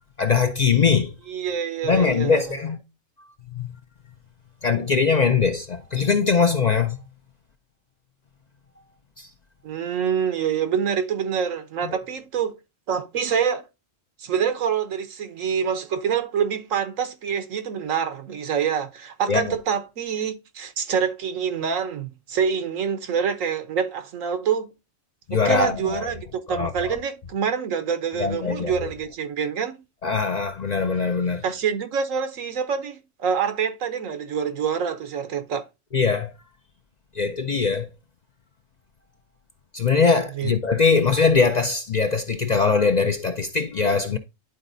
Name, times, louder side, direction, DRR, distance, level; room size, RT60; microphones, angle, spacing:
voice 1, 0.2-1.1 1.8-2.8 3.5-3.6 4.6-7.0 9.2-9.3 11.8-11.9 19.3-19.4 25.3-26.1 26.5-27.0 28.2-28.9 30.0-31.4 35.9-36.3 37.1-37.9 39.7-44.2, left 5 dB, 50° left, 0.5 m, -21 dB
voice 2, 1.3-2.5 9.6-12.6 12.9-13.6 14.2-24.7 25.3-29.7 31.4-35.7 40.3-40.5 41.2-41.3, right 7 dB, 90° right, 1.4 m, -26 dB
11.0 x 4.0 x 2.7 m
omnidirectional pair, 1.3 m